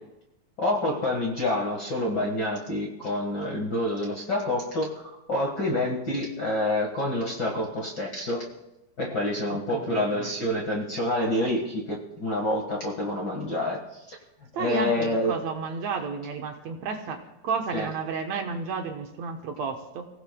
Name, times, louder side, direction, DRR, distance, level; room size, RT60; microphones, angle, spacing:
voice 1, 0.6-8.4 9.0-14.2 14.6-15.4 17.7-17.9, left 1 dB, 45° left, -1 dB, 1.6 m, -27 dB
voice 2, 9.5-10.3 11.4-11.5 14.5-20.1, right 5 dB, 65° right, 4 dB, 2.0 m, -32 dB
30.0 x 17.0 x 2.3 m, 0.94 s
omnidirectional pair, 4.0 m